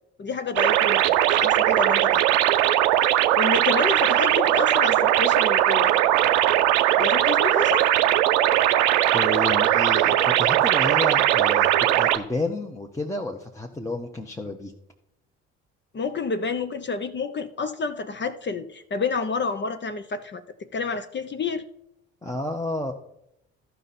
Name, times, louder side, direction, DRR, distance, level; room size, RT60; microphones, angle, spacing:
voice 1, 0.2-2.4 3.0-5.9 7.0-8.0 15.9-20.4 20.7-21.6, left 4 dB, 30° left, 10 dB, 0.7 m, -29 dB
sound 1, 0.6-12.2, right 13 dB, 80° right, 0.6 m, -20 dB
voice 2, 9.1-14.7 22.2-22.9, left 2 dB, 10° left, 0 dB, 0.9 m, -31 dB
13.0 x 5.5 x 4.2 m, 0.80 s
hypercardioid pair, 55°, 35 cm